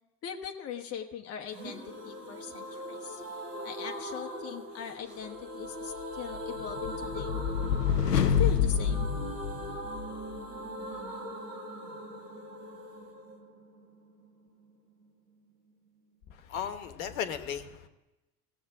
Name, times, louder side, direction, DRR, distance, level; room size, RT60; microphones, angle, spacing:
voice 1, 0.2-3.2 3.6-7.4 8.1-9.1, left 8 dB, 30° left, 3 dB, 1.0 m, -40 dB
sound 1, 1.5-15.1 15.4-15.5 15.7-15.8, equal, 80° right, 1.7 m, -41 dB
sound 2, 6.3-10.2, left 7 dB, 85° left, 0.5 m, -28 dB
voice 2, 16.3-17.9, left 8 dB, 60° left, 9 dB, 1.2 m, -36 dB
18.0 x 7.2 x 3.6 m, 1.0 s
figure-of-eight pair, 70°, 47 cm